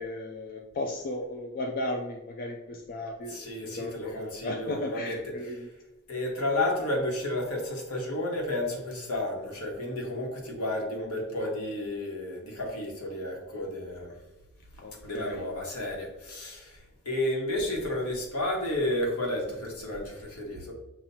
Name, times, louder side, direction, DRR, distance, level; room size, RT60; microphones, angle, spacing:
voice 1, 0.0-5.7 14.8-15.4, left 1 dB, 40° left, 1 dB, 0.4 m, -35 dB
voice 2, 3.3-5.3 6.1-14.1 15.0-16.8 17.0-20.7, left 1 dB, 70° left, -1 dB, 1.3 m, -32 dB
7.2 x 2.5 x 2.8 m, 1.0 s
head